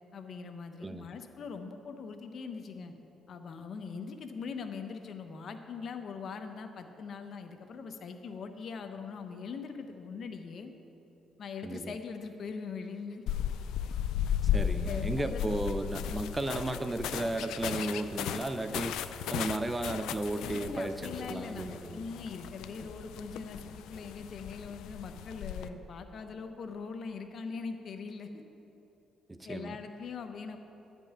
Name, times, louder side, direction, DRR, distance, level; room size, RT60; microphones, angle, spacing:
voice 1, 0.1-2.9 3.3-10.7 11.4-13.2 14.8-15.4 20.3-28.4 29.4-30.6, left 5 dB, 60° left, 6 dB, 0.9 m, -41 dB
voice 2, 11.6-11.9 14.5-19.0 19.3-22.1 29.3-29.8, right 2 dB, 20° right, 10 dB, 0.5 m, -34 dB
sound 1, 13.3-25.7, left 9 dB, 90° left, 0.4 m, -35 dB
11.5 x 5.4 x 8.8 m, 3.0 s
cardioid pair, 90°, 0 cm